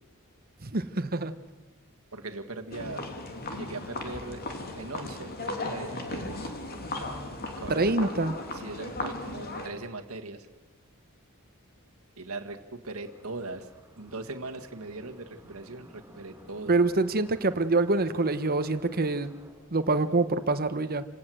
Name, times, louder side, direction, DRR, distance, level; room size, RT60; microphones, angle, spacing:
voice 1, 0.6-1.3 7.7-8.3 16.7-19.3 19.7-21.1, right 2 dB, 45° right, 11 dB, 1.1 m, -25 dB
voice 2, 2.1-3.0 3.5-4.4 4.7-6.5 7.4-8.1 8.5-10.5 12.2-13.7 14.0-16.8, right 3 dB, 75° right, 5 dB, 1.8 m, -40 dB
sound 1, 2.7-9.7, left 2 dB, 45° left, 3.0 m, -36 dB
sound 2, 13.0-19.5, right 1 dB, 15° right, 6.0 m, -55 dB
28.5 x 18.0 x 7.8 m, 1.2 s
head